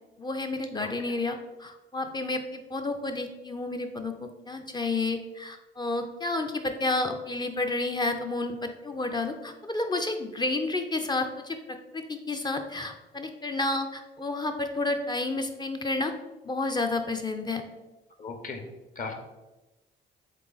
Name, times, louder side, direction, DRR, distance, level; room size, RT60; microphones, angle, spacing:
voice 1, 0.2-16.1 16.4-17.6, left 2 dB, 20° left, 5 dB, 0.4 m, -31 dB
voice 2, 0.8-1.1 18.2-18.6 19.0-19.1, left 4 dB, 45° left, 5 dB, 0.7 m, -37 dB
3.7 x 3.6 x 3.8 m, 1.1 s
cardioid pair, 90°, 20 cm